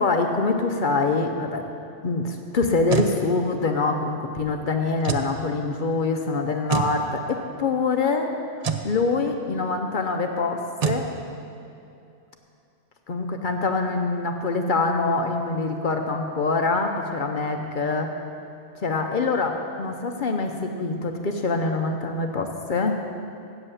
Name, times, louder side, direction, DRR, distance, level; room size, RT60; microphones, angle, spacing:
voice 1, 0.0-1.6 2.0-8.3 8.8-11.1 13.1-18.1 18.8-23.0, left 3 dB, 50° left, 4 dB, 0.7 m, -25 dB
sound 1, 2.6-3.2 5.0-5.3 6.7-7.0 8.6-8.9 10.8-11.1, right 7 dB, 50° right, 0.4 m, -25 dB
7.8 x 7.7 x 8.2 m, 2.6 s
omnidirectional pair, 1.3 m